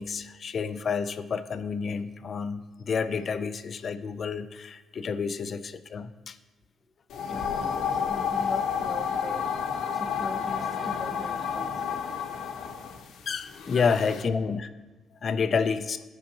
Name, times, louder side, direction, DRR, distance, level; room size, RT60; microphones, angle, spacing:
voice 1, 0.0-6.4 13.3-14.6 15.2-16.0, left 5 dB, 50° left, 11 dB, 0.5 m, -29 dB
sound 1, 7.1-14.2, left 7 dB, 80° left, 0.9 m, -31 dB
voice 2, 7.3-9.4 9.9-12.1 14.2-14.4, left 1 dB, 10° left, 1 dB, 1.3 m, -41 dB
15.0 x 5.6 x 3.0 m, 1.2 s
cardioid pair, 90°, 0 cm